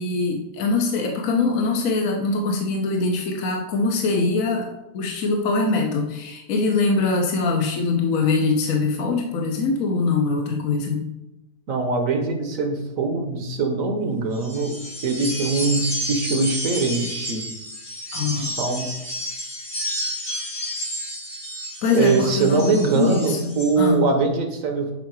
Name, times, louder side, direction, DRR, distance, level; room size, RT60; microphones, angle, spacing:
voice 1, 0.0-11.0 18.1-18.6 21.8-24.1, left 3 dB, 60° left, 1 dB, 1.2 m, -23 dB
voice 2, 11.7-14.8 15.0-17.5 18.4-18.9 21.9-24.9, right 4 dB, 55° right, 4 dB, 1.3 m, -22 dB
New Magic, 14.3-23.8, equal, 80° left, 3.8 m, -31 dB
7.5 x 4.8 x 4.7 m, 0.95 s
omnidirectional pair, 1.8 m